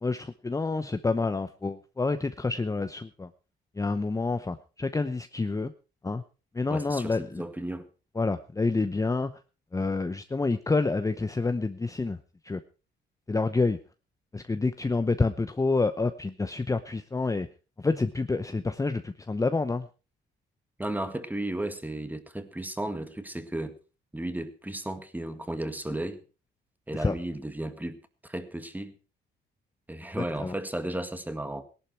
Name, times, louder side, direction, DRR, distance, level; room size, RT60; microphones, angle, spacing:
voice 1, 0.0-3.3 3.8-5.7 6.0-6.2 6.5-7.4 8.2-9.3 9.7-12.2 12.4-12.6 13.3-13.8 14.3-17.5 17.8-19.9 27.0-27.1 30.4-30.5, left 3 dB, 15° left, 10 dB, 0.8 m, -28 dB
voice 2, 6.7-7.9 20.8-23.7 24.1-26.2 26.9-28.9 29.9-31.7, right 1 dB, 10° right, 10 dB, 1.8 m, -34 dB
17.5 x 11.5 x 4.6 m, 0.34 s
cardioid pair, 90°, 20 cm